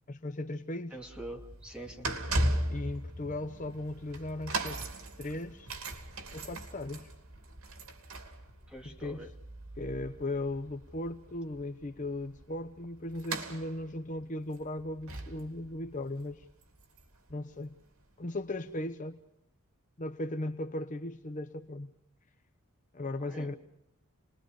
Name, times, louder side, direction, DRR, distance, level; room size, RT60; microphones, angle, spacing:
voice 1, 0.1-1.0 2.5-4.9 5.2-5.7 6.3-7.1 8.8-9.2 9.8-16.5 17.3-17.8 18.2-19.2 20.0-21.9 22.9-23.5, left 1 dB, 35° left, 9 dB, 0.8 m, -37 dB
voice 2, 0.9-2.1 8.7-9.3 23.2-23.6, right 1 dB, 5° right, 0 dB, 2.5 m, -45 dB
sound 1, 1.0-17.9 18.6-18.7, right 1 dB, 80° right, 2.8 m, -38 dB
29.5 x 20.5 x 5.3 m, 0.81 s
head